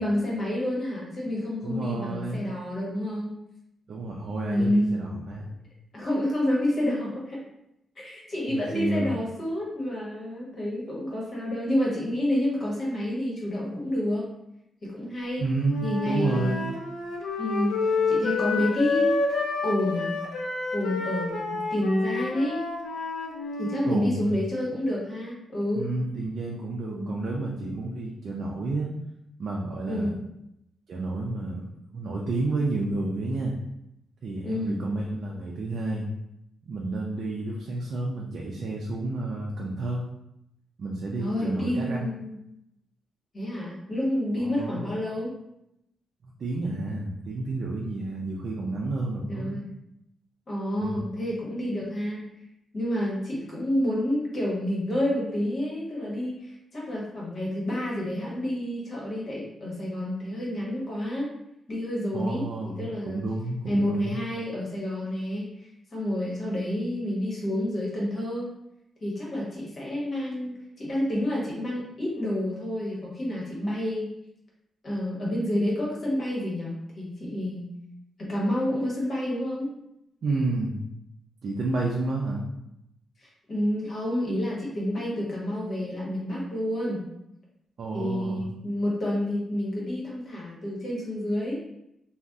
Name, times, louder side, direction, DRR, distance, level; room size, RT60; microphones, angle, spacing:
voice 1, 0.0-3.4 4.5-5.0 5.9-7.4 8.0-14.3 14.8-15.5 15.8-16.7 17.4-19.2 19.6-20.1 20.7-22.6 23.6-25.9 26.9-27.1 29.9-30.2 34.4-34.8 41.2-42.4 43.3-45.4 49.3-49.7 50.5-52.4 52.7-61.3 61.7-63.2 63.6-68.5 69.0-74.1 74.8-77.7 78.2-79.7 83.2-87.0 87.9-91.6, left 1 dB, 45° left, -4 dB, 1.0 m, -29 dB
voice 2, 1.6-2.4 3.9-5.5 8.5-9.2 15.4-16.7 23.8-24.4 25.7-28.9 29.4-30.1 30.9-31.6 31.9-33.5 34.2-36.1 36.7-40.0 40.8-42.1 44.4-44.9 46.2-49.5 50.8-51.0 62.1-64.2 80.2-80.9 81.4-82.5 87.8-88.5, right 2 dB, 60° right, -3 dB, 0.4 m, -30 dB
Wind instrument woodwind instrument, 15.7-23.8, left 4 dB, 85° left, 0.4 m, -29 dB
2.5 x 2.0 x 3.4 m, 0.84 s
cardioid pair, 115°, 0 cm